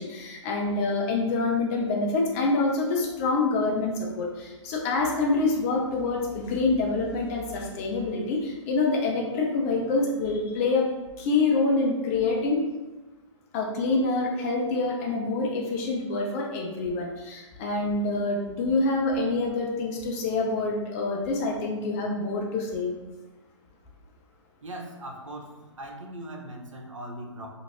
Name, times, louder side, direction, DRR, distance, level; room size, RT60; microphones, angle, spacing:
voice 1, 0.0-10.8 11.2-12.6 13.5-22.9, left 3 dB, 30° left, -1 dB, 0.5 m, -26 dB
voice 2, 24.6-25.5 25.8-27.5, right 1 dB, 80° right, 0 dB, 0.7 m, -39 dB
2.6 x 2.4 x 3.1 m, 1.1 s
figure-of-eight pair, 130°, 16 cm